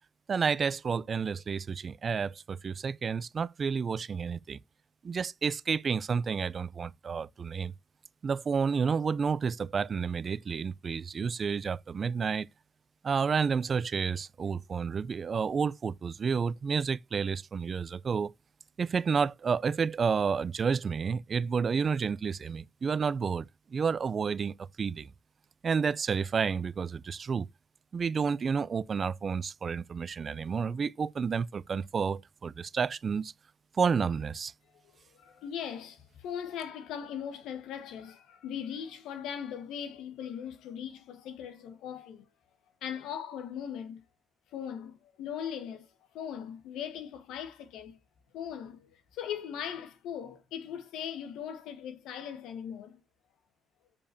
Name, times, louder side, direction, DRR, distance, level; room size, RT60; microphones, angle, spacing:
voice 1, 0.3-4.6 5.0-7.7 8.2-12.5 13.0-18.3 18.8-25.1 25.6-27.5 27.9-33.3 33.8-34.5, right 6 dB, 45° right, 0.4 m, -30 dB
voice 2, 35.1-42.2 42.8-44.0 44.5-45.9 46.1-48.0 48.3-53.0, left 8 dB, 90° left, 1.3 m, -39 dB
6.8 x 5.4 x 2.7 m
cardioid pair, 90°, 0 cm